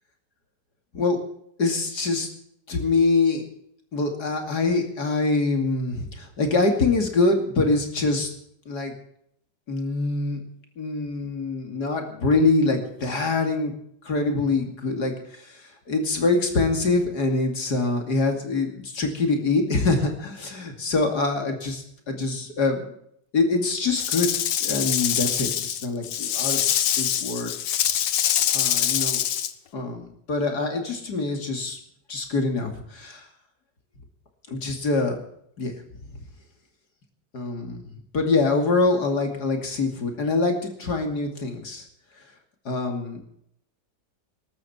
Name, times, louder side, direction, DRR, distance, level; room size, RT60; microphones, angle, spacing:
voice 1, 1.6-2.3 2.7-3.4 3.9-8.3 8.7-8.9 9.7-10.4 10.8-13.7 14.0-15.1 15.4-22.9 23.3-24.3 24.6-26.6 27.0-27.5 28.5-29.2 29.7-31.8 32.1-33.2 34.5-35.2 35.6-35.7 36.1-36.2 37.3-37.8 38.1-41.8 42.6-43.2, left 3 dB, 65° left, 3 dB, 3.2 m, -24 dB
Rattle / Rattle (instrument), 24.0-29.5, left 10 dB, 80° left, 1.6 m, -24 dB
21.0 x 13.0 x 4.4 m, 0.71 s
omnidirectional pair, 1.9 m